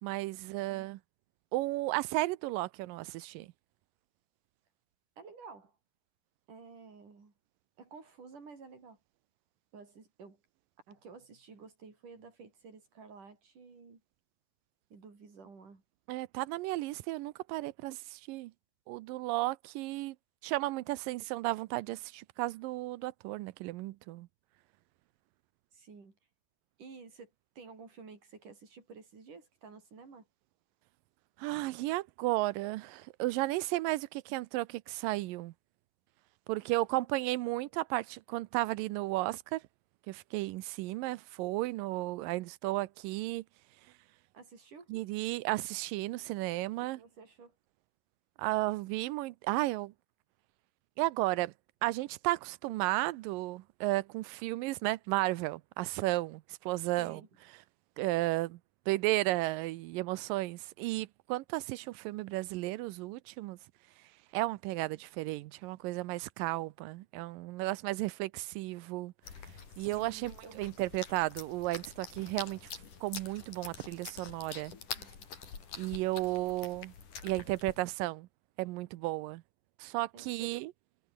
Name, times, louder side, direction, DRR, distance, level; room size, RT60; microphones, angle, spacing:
voice 1, 0.0-1.0 1.5-3.5 16.1-18.5 18.9-20.2 20.4-24.3 31.4-35.5 36.5-39.6 40.1-43.4 44.9-47.0 48.4-49.9 51.0-51.5 51.8-57.2 58.0-58.6 58.9-63.6 64.3-69.1 69.8-72.7 73.0-74.7 75.8-76.9 77.2-78.3 78.6-79.4 79.8-80.7, right 19 dB, 90° right, 2.4 m, -34 dB
voice 2, 5.2-5.8 6.5-7.3 7.8-9.0 9.7-10.4 10.9-14.0 14.9-15.8 25.7-26.2 26.8-30.3 44.3-44.9 46.8-47.6 57.0-57.3 69.9-70.7 75.0-75.2 80.1-80.6, right 5 dB, 70° right, 7.2 m, -52 dB
sound 1, 69.2-77.8, left 6 dB, 70° left, 5.5 m, -46 dB
omnidirectional pair, 3.8 m